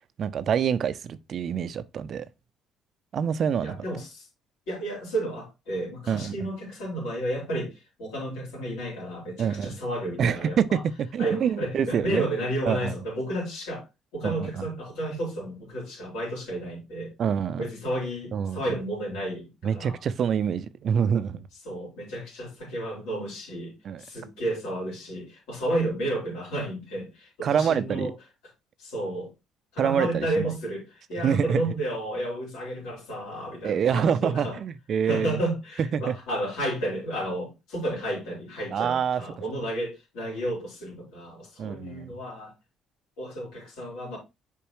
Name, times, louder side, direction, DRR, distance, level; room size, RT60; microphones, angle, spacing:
voice 1, 0.2-2.3 3.1-3.8 6.1-6.5 9.4-9.8 10.2-12.3 12.7-12.9 14.2-14.6 17.2-17.6 18.3-18.8 19.6-21.5 23.8-24.0 27.4-28.1 29.8-30.5 31.2-31.6 33.6-35.4 35.8-36.1 38.7-39.2 41.6-42.1, right 7 dB, 55° right, 0.5 m, -26 dB
voice 2, 3.6-4.3 4.7-10.8 11.2-13.9 14.1-17.1 17.6-20.0 21.6-28.1 28.8-29.3 29.7-34.6 35.1-42.5 43.2-44.2, right 1 dB, 80° left, 3.9 m, -32 dB
7.0 x 4.6 x 3.0 m
supercardioid pair, 65°, 0 cm